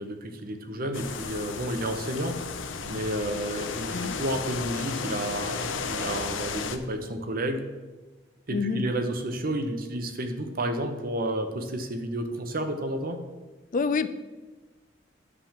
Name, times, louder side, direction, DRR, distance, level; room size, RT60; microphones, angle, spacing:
voice 1, 0.0-2.4 2.8-7.6 8.5-13.2, right 1 dB, 50° right, 6 dB, 0.9 m, -31 dB
sound 1, 0.9-6.8, left 5 dB, 80° left, 0.7 m, -34 dB
voice 2, 8.5-8.8 13.7-14.1, left 4 dB, 45° left, 13 dB, 0.4 m, -27 dB
9.9 x 3.7 x 7.2 m, 1.2 s
head